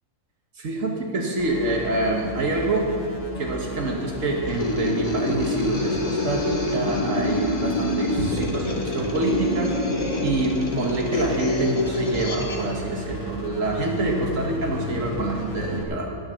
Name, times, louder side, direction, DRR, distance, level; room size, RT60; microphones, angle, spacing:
voice 1, 0.6-2.9 3.4-16.2, right 2 dB, 80° right, 0 dB, 1.8 m, -26 dB
sound 1, 1.4-15.8, left 1 dB, 50° left, 2.0 m, -35 dB
sound 2, 4.5-12.7, left 1 dB, 30° left, 1.2 m, -26 dB
sound 3, 11.4-15.8, left 2 dB, 55° right, 2.3 m, -43 dB
18.0 x 6.9 x 6.5 m, 2.1 s
omnidirectional pair, 1.3 m